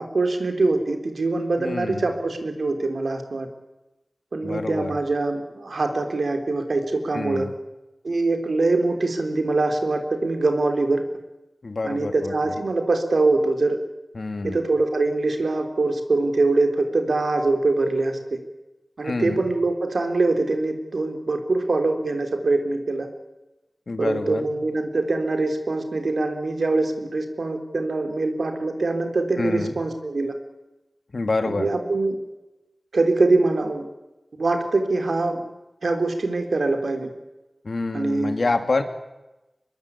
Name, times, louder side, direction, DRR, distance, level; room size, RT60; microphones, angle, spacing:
voice 1, 0.0-3.5 4.3-7.5 8.0-11.0 11.8-13.8 14.4-18.4 19.0-23.1 24.0-30.3 31.5-32.2 32.9-33.9 34.4-35.4 35.8-37.1 37.9-38.3, right 3 dB, 80° right, 6 dB, 3.7 m, -23 dB
voice 2, 1.6-2.1 4.4-4.9 7.1-7.5 11.6-12.3 14.1-14.6 19.0-19.4 23.9-24.5 29.4-29.7 31.1-31.7 37.6-38.8, left 3 dB, 65° left, 7 dB, 2.7 m, -27 dB
24.5 x 21.5 x 8.5 m, 1.0 s
wide cardioid pair, 75°, 0 cm